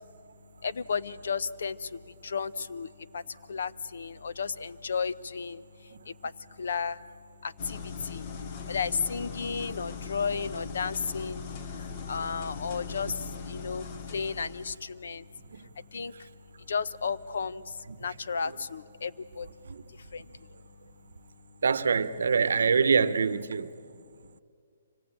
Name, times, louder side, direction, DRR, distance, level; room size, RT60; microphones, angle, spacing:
voice 1, 0.6-3.2 3.5-5.6 6.2-6.3 6.6-7.0 7.4-8.3 8.7-11.4 12.1-13.1 13.5-13.8 14.1-15.2 15.9-16.1 16.7-17.6 18.0-19.1 19.4-19.5 20.1-20.2, left 5 dB, 70° left, 0.7 m, -33 dB
sound 1, 7.6-14.8, left 5 dB, 30° left, 1.0 m, -39 dB
voice 2, 21.6-23.7, right 5 dB, 75° right, 0.8 m, -25 dB
25.5 x 18.0 x 8.8 m
hypercardioid pair, 165°, 0 cm